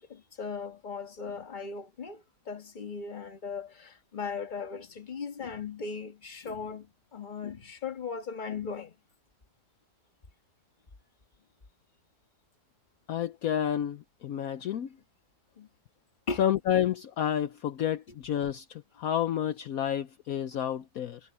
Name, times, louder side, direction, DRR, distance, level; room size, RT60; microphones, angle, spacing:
voice 1, 0.0-6.9 7.1-8.9 15.6-15.7 16.3-16.4, left 5 dB, 30° left, 1.5 m, -38 dB
voice 2, 13.1-14.9 16.4-21.2, left 10 dB, 65° left, 1.1 m, -30 dB
omnidirectional pair, 1.7 m